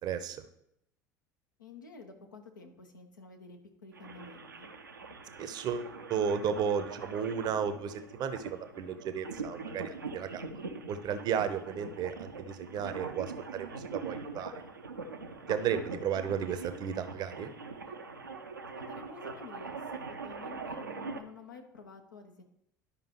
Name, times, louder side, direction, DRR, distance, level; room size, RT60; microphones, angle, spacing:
voice 1, 0.0-0.4 5.4-14.5 15.5-17.5, right 7 dB, 40° right, 10 dB, 0.7 m, -34 dB
voice 2, 1.6-4.7 11.7-12.0 18.8-22.4, left 3 dB, 80° left, 4 dB, 0.9 m, -50 dB
sound 1, 3.9-21.2, right 4 dB, 85° right, 0.6 m, -43 dB
11.5 x 5.2 x 3.0 m, 0.76 s
figure-of-eight pair, 65°, 10 cm